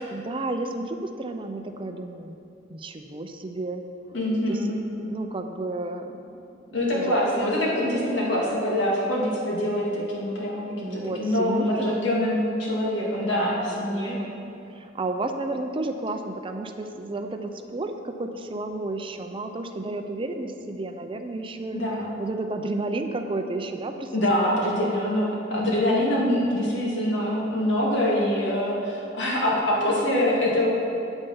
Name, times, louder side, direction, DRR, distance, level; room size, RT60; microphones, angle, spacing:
voice 1, 0.1-2.4 2.7-3.8 4.5-4.7 5.0-6.4 6.9-7.5 10.8-12.0 13.2-13.3 13.7-14.4 14.7-21.8 22.2-24.1 24.4-25.0, right 2 dB, 30° right, 6 dB, 0.5 m, -32 dB
voice 2, 4.1-4.8 6.7-14.2 21.7-22.2 24.1-30.7, left 1 dB, 85° left, -4 dB, 2.3 m, -24 dB
8.9 x 8.2 x 5.5 m, 2.7 s
head